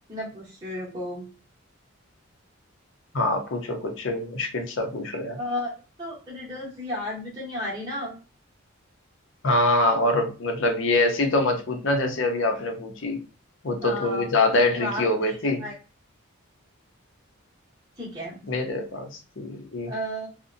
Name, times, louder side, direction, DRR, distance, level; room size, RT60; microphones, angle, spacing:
voice 1, 0.1-1.3 5.4-5.7 6.0-8.1 13.8-14.3 14.7-15.7 18.0-18.4 19.9-20.3, left 1 dB, 20° right, -7 dB, 0.8 m, -33 dB
voice 2, 3.1-5.4 9.4-13.2 13.6-15.6 18.5-19.9, left 2 dB, 60° left, 4 dB, 0.6 m, -24 dB
2.6 x 2.1 x 2.5 m, 0.33 s
head